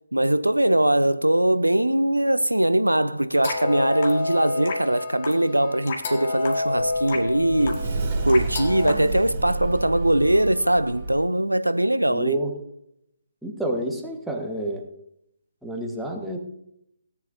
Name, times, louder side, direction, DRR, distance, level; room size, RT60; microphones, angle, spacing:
voice 1, 0.1-12.3, right 1 dB, 85° right, 0.6 m, -21 dB
sound 1, 3.4-8.9, left 2 dB, 40° left, 1.8 m, -29 dB
Sliding door, 6.4-11.2, right 3 dB, 30° right, 2.8 m, -30 dB
voice 2, 12.1-12.5 13.4-14.8 15.6-16.4, right 1 dB, ahead, 1.3 m, -29 dB
17.0 x 10.5 x 2.7 m
figure-of-eight pair, 140°, 0 cm